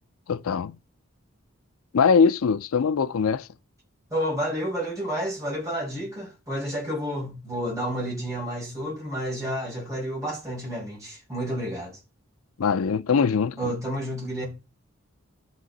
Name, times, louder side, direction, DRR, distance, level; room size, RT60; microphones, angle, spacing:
voice 1, 0.3-0.7 1.9-3.5 12.6-13.7, left 5 dB, 90° left, 0.5 m, -22 dB
voice 2, 4.1-12.0 13.6-14.4, equal, 15° right, 5.6 m, -30 dB
11.5 x 6.1 x 4.0 m
head